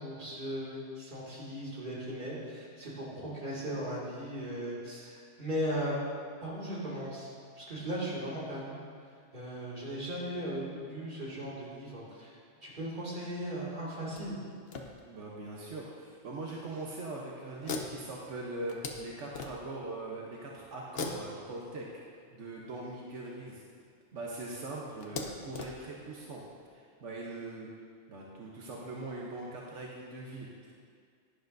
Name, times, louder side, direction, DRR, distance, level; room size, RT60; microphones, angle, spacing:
voice 1, 0.0-6.1 6.4-7.3 7.6-8.8 9.3-14.4, equal, 45° right, -7 dB, 2.4 m, -37 dB
sound 1, 14.1-15.5 16.2-16.3 16.7-16.9 17.6-19.9 20.9-22.6 23.7-23.8 24.1-24.2 25.0-26.6, left 4 dB, 60° left, 1.0 m, -42 dB
voice 2, 15.0-21.9 22.3-23.6 24.1-26.4 26.7-27.7 28.1-30.7, right 2 dB, 80° right, -3 dB, 1.3 m, -41 dB
11.5 x 10.5 x 2.6 m, 2.1 s
omnidirectional pair, 1.2 m